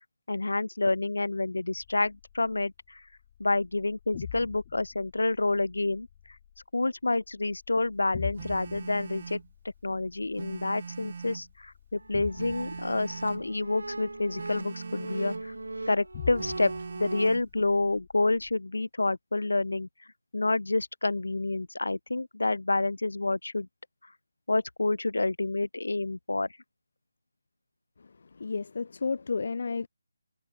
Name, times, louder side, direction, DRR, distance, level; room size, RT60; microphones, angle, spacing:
voice 1, 0.3-3.0 3.4-6.1 6.7-9.4 9.8-15.5 15.9-19.9 20.3-23.7 24.5-26.5, left 2 dB, 85° left, 0.9 m, -28 dB
sound 1, 1.8-18.5, left 10 dB, 30° left, 1.3 m, -46 dB
Telephone, 8.3-9.5 10.3-11.5 12.3-13.5 14.3-15.5 16.4-17.5, right 5 dB, 45° right, 1.1 m, -41 dB
sound 2, 12.0-17.3, right 2 dB, 90° right, 1.0 m, -39 dB
voice 2, 28.3-29.9, left 4 dB, 55° left, 0.4 m, -32 dB
figure-of-eight pair, 165°, 0 cm